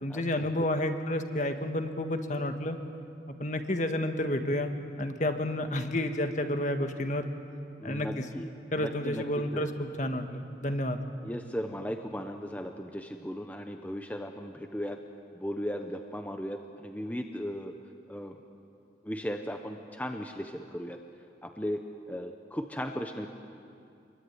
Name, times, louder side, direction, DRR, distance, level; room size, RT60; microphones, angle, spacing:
voice 1, 0.0-2.8 3.3-4.7 5.0-7.3 7.8-8.3 8.7-11.0, left 1 dB, 40° left, 6 dB, 1.7 m, -30 dB
voice 2, 7.8-8.5 8.8-9.7 11.2-15.0 15.3-17.7 18.1-18.4 19.0-21.0 21.4-21.8 22.1-23.3, equal, 10° left, 5 dB, 1.0 m, -36 dB
27.5 x 22.5 x 9.6 m, 2.5 s
head